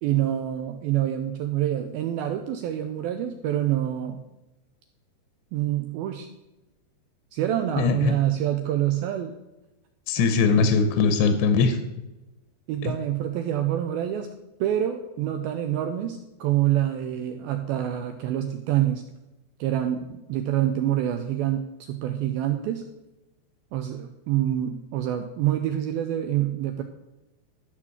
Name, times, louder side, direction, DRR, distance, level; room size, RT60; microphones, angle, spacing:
voice 1, 0.0-4.2 5.5-6.3 7.3-9.3 10.2-10.4 12.7-14.3 14.6-19.0 19.6-22.8 23.7-26.8, right 12 dB, 80° right, 6 dB, 2.2 m, -26 dB
voice 2, 7.8-8.1 10.1-11.8 12.8-12.9, left 5 dB, 90° left, 8 dB, 3.0 m, -21 dB
13.0 x 4.8 x 7.2 m, 1.0 s
omnidirectional pair, 4.9 m